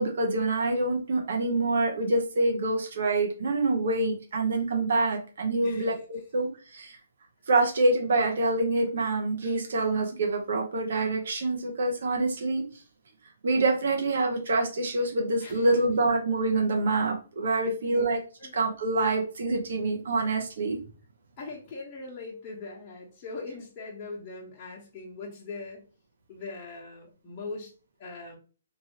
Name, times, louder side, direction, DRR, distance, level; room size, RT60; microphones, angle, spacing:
voice 1, 0.0-7.0 7.5-12.6 13.4-18.2 18.5-20.8, right 2 dB, 65° right, 2 dB, 0.9 m, -26 dB
voice 2, 5.6-6.2 15.4-15.7 17.6-18.1 18.4-18.5 21.4-25.8 26.3-27.7 28.0-28.4, left 3 dB, 25° left, -5 dB, 1.0 m, -41 dB
2.8 x 2.6 x 2.9 m, 0.36 s
hypercardioid pair, 145°, 0 cm